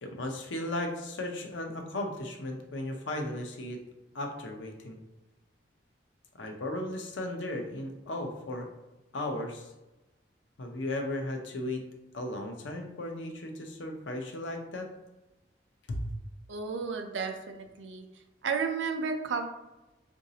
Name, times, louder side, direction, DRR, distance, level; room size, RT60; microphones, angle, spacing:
voice 1, 0.0-3.8 4.1-5.0 6.3-8.7 9.1-9.7 10.6-11.8 12.1-14.9 15.9-16.1, left 1 dB, 90° left, 3 dB, 0.6 m, -36 dB
voice 2, 16.5-18.1 18.4-19.5, right 5 dB, 90° right, 5 dB, 0.5 m, -32 dB
3.9 x 2.6 x 2.7 m, 1.0 s
head